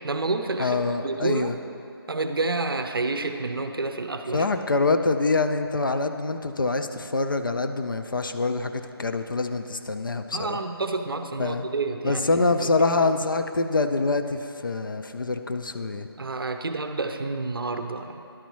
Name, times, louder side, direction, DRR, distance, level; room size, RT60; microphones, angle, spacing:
voice 1, 0.0-1.5 2.1-4.5 10.3-12.2 12.6-12.7 13.0-13.1 16.2-18.2, right 3 dB, 60° right, 7 dB, 0.6 m, -29 dB
voice 2, 0.6-1.6 4.3-10.6 11.4-11.7 12.0-16.1, left 3 dB, 55° left, 7 dB, 0.4 m, -25 dB
11.5 x 4.1 x 4.6 m, 2.6 s
figure-of-eight pair, 175°, 13 cm